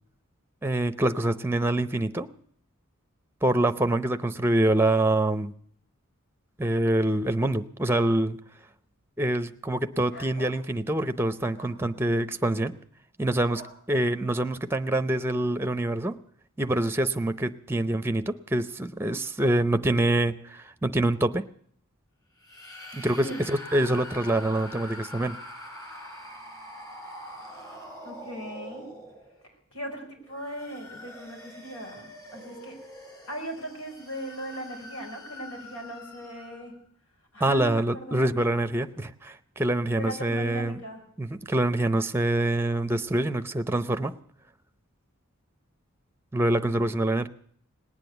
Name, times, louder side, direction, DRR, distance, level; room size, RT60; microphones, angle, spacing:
voice 1, 0.6-2.3 3.4-5.5 6.6-8.4 9.2-12.8 13.2-13.6 13.9-16.2 16.6-21.4 22.9-25.4 37.4-40.8 41.2-44.1 46.3-47.3, right 1 dB, 10° right, 10 dB, 0.7 m, -25 dB
sound 1, 10.1-10.6 11.5-11.8 13.5-13.8, left 1 dB, 55° left, 2.1 m, -46 dB
sound 2, 22.4-29.5 30.2-36.7, left 1 dB, 15° left, 5.0 m, -44 dB
voice 2, 28.0-28.9 29.7-32.8 33.3-36.8 37.3-38.6 40.0-41.0, equal, 90° left, 2 dB, 5.0 m, -38 dB
19.5 x 9.1 x 7.9 m, 0.62 s
head